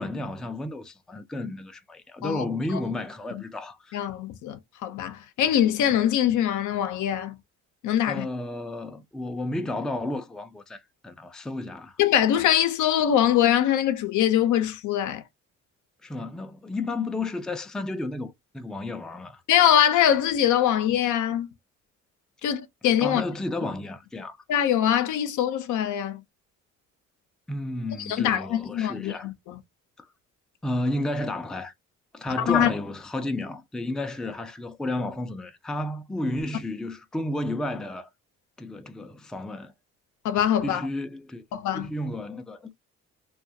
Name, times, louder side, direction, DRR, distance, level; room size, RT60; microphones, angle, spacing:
voice 1, 0.0-4.0 8.1-12.0 16.0-19.4 23.0-24.4 27.5-29.3 30.0-30.1 30.6-31.7 32.1-38.1 38.6-39.7 40.6-41.4 41.7-42.7, left 2 dB, ahead, 0.3 m, -32 dB
voice 2, 3.9-7.4 7.8-8.3 12.0-15.2 19.5-21.5 22.4-23.2 24.5-26.2 28.0-29.6 32.4-32.7 40.2-40.9 41.5-41.9, left 10 dB, 75° left, 0.5 m, -23 dB
2.3 x 2.3 x 2.6 m
cardioid pair, 90°, 30 cm